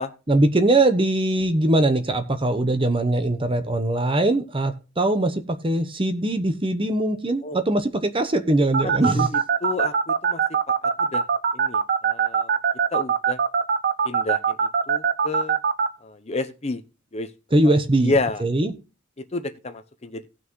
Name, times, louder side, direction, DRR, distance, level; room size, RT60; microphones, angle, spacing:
voice 1, 0.3-9.3 17.5-18.1 18.4-18.7, right 2 dB, 25° right, 9 dB, 0.9 m, -21 dB
sound 1, 8.7-15.9, right 6 dB, 45° right, 0.5 m, -21 dB
voice 2, 8.8-10.4 10.7-11.2 11.5-12.5 12.9-13.4 14.0-15.6 16.0-16.8 17.1-17.3 17.6-17.7 18.0-18.4 19.2-20.3, left 2 dB, 30° left, 8 dB, 0.8 m, -30 dB
17.5 x 6.0 x 3.1 m, 0.30 s
head